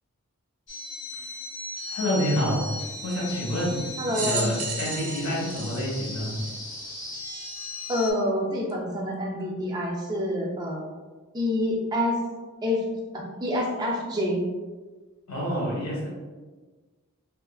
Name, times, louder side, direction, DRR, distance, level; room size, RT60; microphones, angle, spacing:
sound 1, 0.7-8.1, left 2 dB, 55° left, 0.6 m, -37 dB
voice 1, 1.9-2.6 3.0-6.4 15.3-16.1, equal, 85° left, -5 dB, 1.2 m, -28 dB
voice 2, 4.0-4.5 7.9-10.9 11.3-12.2 12.6-12.8 13.1-14.4, left 1 dB, 20° right, -1 dB, 0.3 m, -27 dB
sound 2, 4.1-6.8 7.5-7.6 8.7-8.8, right 5 dB, 85° right, 0.5 m, -33 dB
2.7 x 2.3 x 2.3 m, 1.3 s
head